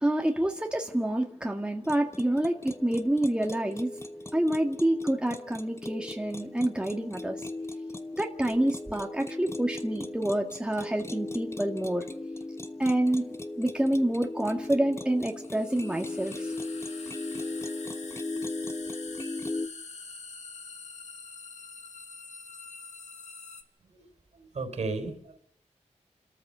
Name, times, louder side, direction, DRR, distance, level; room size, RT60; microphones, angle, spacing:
voice 1, 0.0-3.9 4.3-7.4 8.2-12.0 12.8-13.3 13.6-16.5, right 1 dB, 10° right, 2 dB, 1.7 m, -27 dB
sound 1, 1.8-19.7, left 2 dB, 20° left, 1.2 m, -38 dB
sound 2, 13.1-13.2 15.2-23.6, left 4 dB, 70° left, 1.9 m, -45 dB
voice 2, 24.3-25.4, right 3 dB, 65° right, 7 dB, 3.9 m, -35 dB
28.0 x 13.5 x 6.8 m, 0.72 s
wide cardioid pair, 90°, 12 cm